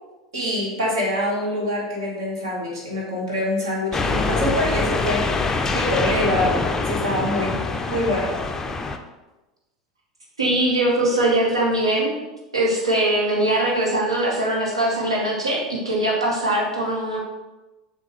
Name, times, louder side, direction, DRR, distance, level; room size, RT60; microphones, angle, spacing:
voice 1, 0.3-7.6 7.9-8.3, left 1 dB, 65° right, -4 dB, 1.5 m, -25 dB
sound 1, 3.9-9.0, left 3 dB, 15° left, 0.4 m, -24 dB
voice 2, 10.4-12.1 12.5-17.2, right 1 dB, 85° right, -2 dB, 1.0 m, -21 dB
6.8 x 2.3 x 3.2 m, 1.1 s
figure-of-eight pair, 80°, 3 cm